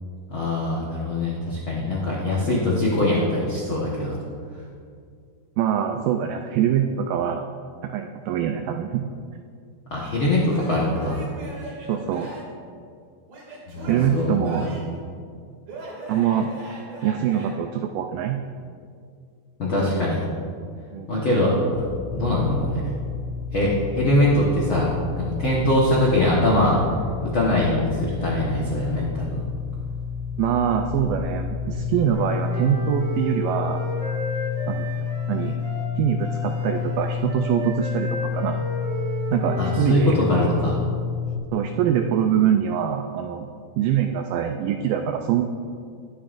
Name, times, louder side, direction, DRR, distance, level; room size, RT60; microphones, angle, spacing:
voice 1, 0.3-4.2 9.9-11.2 13.7-14.7 19.6-20.2 21.1-21.8 22.1-22.8 23.5-24.9 25.2-26.8 27.2-29.4 39.6-40.8, left 1 dB, 70° left, -6 dB, 1.1 m, -22 dB
voice 2, 5.6-7.4 7.8-9.0 11.9-12.3 13.9-14.7 16.1-16.5 17.0-18.4 20.9-21.2 30.4-33.8 34.7-35.6 36.0-38.7 39.3-40.2 41.5-43.5 43.8-45.4, right 9 dB, 90° right, 5 dB, 1.9 m, -24 dB
Male speech man speaking / Yell / Laughter, 10.5-12.6 13.3-15.0 15.7-17.5, right 1 dB, 65° right, 4.1 m, -38 dB
sound 1, 21.7-41.4, left 6 dB, 90° left, 1.8 m, -30 dB
Wind instrument woodwind instrument, 31.9-40.4, right 1 dB, 45° right, 1.0 m, -34 dB
20.5 x 7.5 x 2.6 m, 2.2 s
omnidirectional pair, 4.4 m